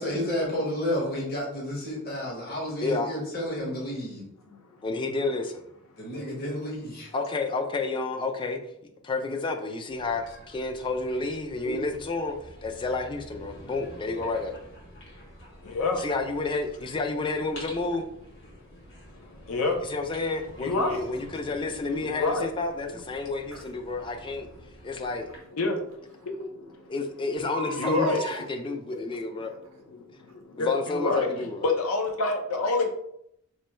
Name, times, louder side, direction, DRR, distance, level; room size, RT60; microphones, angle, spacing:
voice 1, 0.0-4.3 6.0-7.1, left 1 dB, 45° left, 1.0 m, -31 dB
voice 2, 4.8-5.7 7.1-8.6 9.0-12.4 12.6-14.6 15.9-18.0 19.8-24.5 24.8-25.3 26.9-29.6 30.6-31.7, left 3 dB, 25° left, 0.3 m, -30 dB
sound 1, 9.9-25.4, equal, 60° left, 1.2 m, -49 dB
voice 3, 15.6-16.0 19.5-19.8 20.6-21.0 22.0-22.5 25.5-25.8 27.8-28.2 28.6-28.8 30.5-31.3 31.6-32.9, left 3 dB, 80° left, 0.6 m, -26 dB
Crying sobbing, 20.9-21.1 23.5-23.7 25.3-25.4 25.9-26.0 26.2-26.3 27.4-28.4 29.4-29.7 30.3-30.4, right 4 dB, 70° right, 0.6 m, -36 dB
3.1 x 2.2 x 4.1 m
head